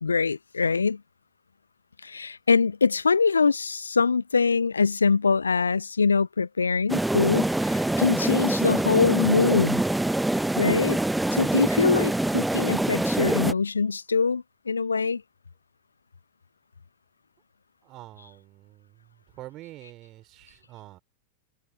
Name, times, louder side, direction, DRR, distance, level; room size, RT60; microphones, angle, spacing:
voice 1, 0.0-1.0 2.0-9.8 10.6-11.0 11.3-15.2, left 5 dB, 75° left, 0.6 m, -23 dB
sound 1, 6.9-13.5, right 1 dB, 5° right, 0.6 m, -25 dB
voice 2, 17.8-21.0, right 16 dB, 35° right, 4.4 m, -46 dB
figure-of-eight pair, 90°, 0 cm